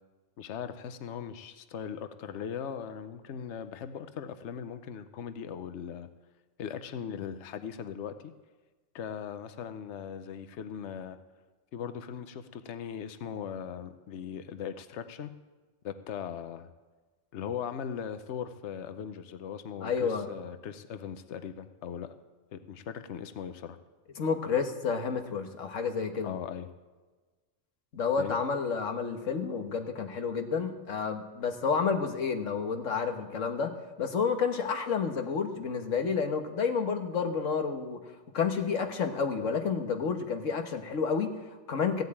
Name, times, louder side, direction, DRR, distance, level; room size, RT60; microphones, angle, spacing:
voice 1, 0.4-6.1 6.6-8.3 8.9-11.2 11.7-15.3 15.8-16.7 17.3-22.1 22.5-23.8 26.2-26.7 28.2-28.4, left 8 dB, 70° left, 10 dB, 1.1 m, -39 dB
voice 2, 19.8-20.3 24.2-26.3 27.9-33.7 34.0-42.0, left 5 dB, 90° left, 6 dB, 1.6 m, -30 dB
15.5 x 8.0 x 8.7 m, 1.3 s
omnidirectional pair, 1.3 m